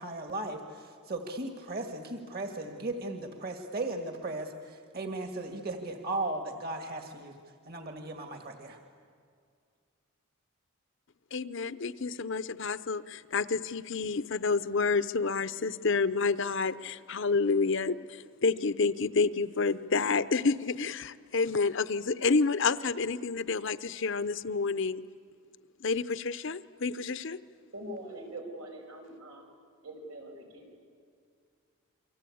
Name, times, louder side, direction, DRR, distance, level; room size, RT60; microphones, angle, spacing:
voice 1, 0.0-7.3 7.7-8.8, right 2 dB, 45° right, 5 dB, 1.9 m, -36 dB
voice 2, 11.3-25.0 25.8-27.4, left 4 dB, 55° left, 14 dB, 0.7 m, -29 dB
voice 3, 27.7-29.5 29.8-30.8, right 1 dB, 90° right, 2 dB, 6.3 m, -43 dB
29.0 x 24.0 x 8.6 m, 2.1 s
head